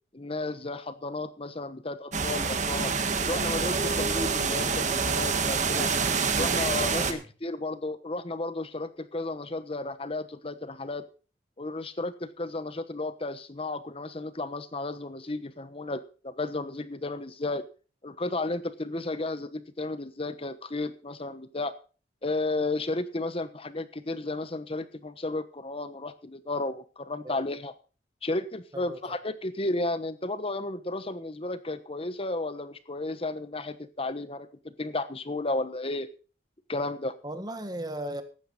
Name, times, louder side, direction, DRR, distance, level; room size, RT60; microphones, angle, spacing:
voice 1, 0.1-2.9 3.3-5.9 6.4-11.1 11.6-17.6 18.0-21.7 22.2-27.7 28.2-36.1 36.7-37.1, left 2 dB, 30° left, 12 dB, 1.1 m, -33 dB
sound 1, 2.1-7.1, right 5 dB, 45° right, 1.6 m, -27 dB
voice 2, 28.7-29.2 37.2-38.2, right 1 dB, 25° right, 9 dB, 1.6 m, -37 dB
15.5 x 11.5 x 4.2 m, 0.37 s
head